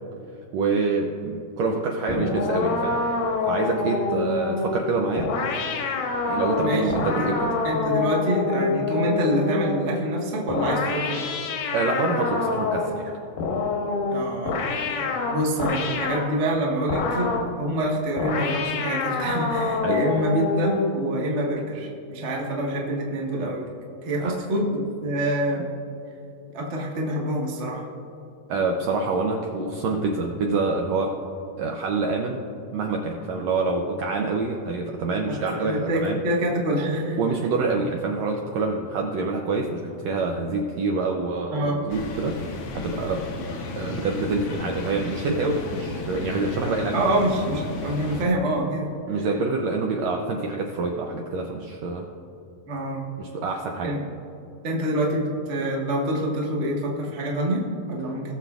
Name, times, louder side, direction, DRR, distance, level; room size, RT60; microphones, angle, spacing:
voice 1, 0.5-3.0 3.5-5.3 6.3-7.5 11.7-13.2 19.8-20.0 24.2-24.3 28.5-31.2 31.6-32.4 32.7-36.2 37.2-43.3 43.8-47.2 49.1-52.1 53.2-54.0, right 3 dB, 80° right, 2 dB, 1.5 m, -26 dB
sound 1, 2.1-9.9 10.5-13.0 13.4-16.3 16.9-17.5 18.2-21.0, left 3 dB, 90° left, 2.6 m, -26 dB
voice 2, 6.6-7.3 7.6-11.2 14.1-14.6 15.0-23.7 24.0-25.7 26.5-27.8 35.2-35.4 35.6-37.2 41.5-41.8 46.9-48.9 52.7-53.1 53.8-54.0 54.6-58.3, right 1 dB, 55° right, -2 dB, 0.7 m, -26 dB
sound 2, 41.9-48.2, left 3 dB, 65° left, 1.6 m, -34 dB
19.5 x 7.0 x 2.4 m, 2.8 s
omnidirectional pair, 3.7 m